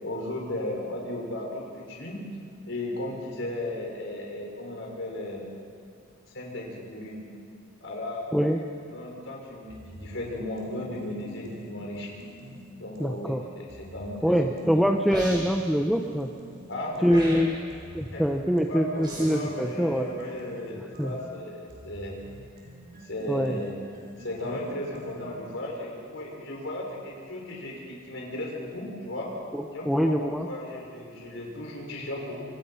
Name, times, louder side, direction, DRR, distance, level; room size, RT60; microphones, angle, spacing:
voice 1, 0.0-2.2 2.6-5.5 6.3-7.2 7.8-8.5 8.9-12.2 12.8-14.9 16.7-17.4 18.1-18.2 18.7-22.2 23.0-23.8 24.2-29.3 29.7-32.4, left 1 dB, 65° left, -1 dB, 6.0 m, -35 dB
sound 1, 9.7-13.2 13.7-17.2 17.7-25.5, equal, 45° right, 5.0 m, -47 dB
voice 2, 13.0-13.4 14.2-16.3 17.0-17.6 17.9-20.1 21.0-21.1 23.3-23.6 29.5-30.5, equal, ahead, 3 dB, 0.8 m, -24 dB
sound 2, 15.1-15.8 17.1-17.8 19.0-19.5, right 1 dB, 20° right, 7.4 m, -39 dB
26.5 x 25.5 x 5.8 m, 2.4 s
head